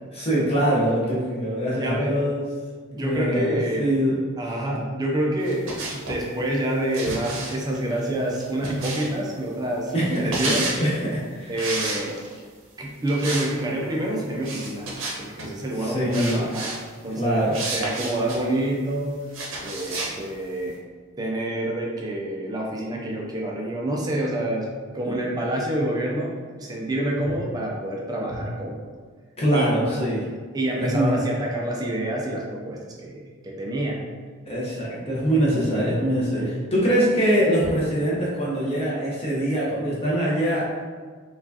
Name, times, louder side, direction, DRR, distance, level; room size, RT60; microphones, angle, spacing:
voice 1, 0.1-2.5 2.9-4.2 9.9-11.5 15.8-16.4 17.1-17.6 29.4-30.3 30.8-31.2 34.5-40.7, equal, 30° left, -7 dB, 0.7 m, -23 dB
voice 2, 1.7-2.2 2.9-3.9 4.4-5.6 5.9-10.7 11.5-12.2 12.8-14.9 15.2-16.8 17.0-17.5 17.7-19.2 19.6-20.8 21.2-24.7 24.9-28.9 29.5-30.1 30.5-34.0 36.4-36.6, right 1 dB, 20° right, -2 dB, 0.4 m, -27 dB
sound 1, 5.4-6.2 6.9-9.3 10.1-10.8 11.6-12.4 13.1-13.5 13.8-13.9 14.4-15.5 16.1-16.8 17.5-18.4 19.3-20.1, right 2 dB, 65° right, 0.8 m, -30 dB
4.5 x 2.3 x 2.7 m, 1.5 s
head